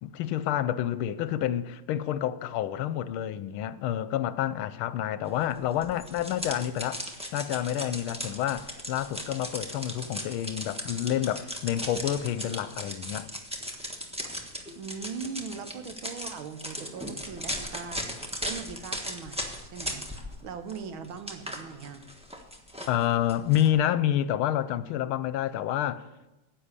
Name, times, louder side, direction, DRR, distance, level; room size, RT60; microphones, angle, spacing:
voice 1, 0.0-7.0 7.3-13.3 22.9-26.0, left 11 dB, 85° left, 1.5 m, -28 dB
sound 1, 5.8-20.4 20.7-23.7, equal, 5° right, 0.9 m, -37 dB
voice 2, 14.7-18.0 18.4-20.1 20.4-22.0, right 6 dB, 80° right, 1.8 m, -40 dB
10.5 x 8.6 x 6.7 m
omnidirectional pair, 2.3 m